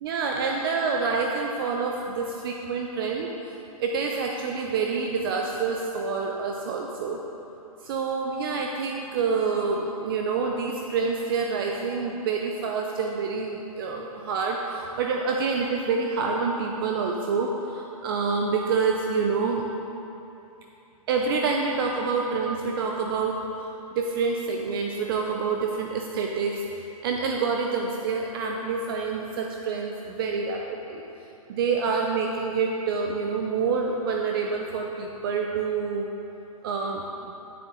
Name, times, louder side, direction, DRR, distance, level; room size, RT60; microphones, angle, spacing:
voice 1, 0.0-7.2 7.8-19.7 21.1-23.4 23.9-31.0 31.5-36.1 36.6-37.3, right 4 dB, 40° right, 1 dB, 0.6 m, -27 dB
10.0 x 6.6 x 3.8 m, 2.9 s
hypercardioid pair, 150°, 19 cm